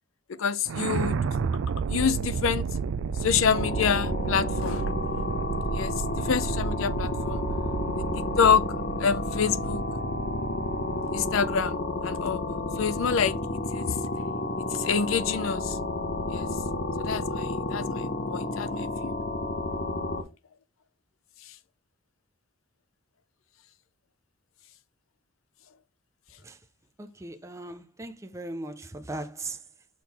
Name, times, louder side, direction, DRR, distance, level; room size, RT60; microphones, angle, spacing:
voice 1, 0.4-1.2 1.9-2.7 3.2-4.9 5.7-7.4 8.0-8.1 8.4-8.6 9.0-9.8 11.1-12.4 12.8-13.4 13.7-14.0 14.7-15.8 16.3-16.5 17.0-19.1, left 6 dB, 80° left, 0.5 m, -27 dB
sound 1, 0.7-11.7, right 5 dB, 70° right, 0.4 m, -32 dB
sound 2, 3.5-20.2, left 2 dB, 50° left, 0.8 m, -31 dB
voice 2, 27.0-29.6, right 2 dB, 15° right, 0.5 m, -38 dB
6.2 x 3.7 x 4.1 m
head